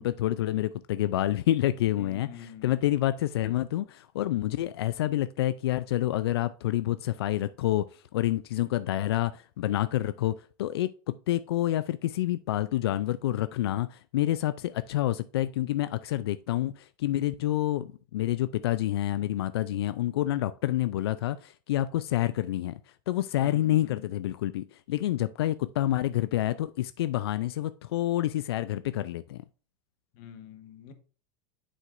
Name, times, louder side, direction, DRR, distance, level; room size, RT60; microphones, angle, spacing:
voice 1, 0.0-7.9 8.1-22.8 23.1-29.4, left 14 dB, 85° left, 0.4 m, -28 dB
voice 2, 2.0-2.8 23.4-24.1 30.1-30.9, left 9 dB, 60° left, 1.3 m, -46 dB
7.7 x 6.4 x 2.5 m
supercardioid pair, 120°, 13 cm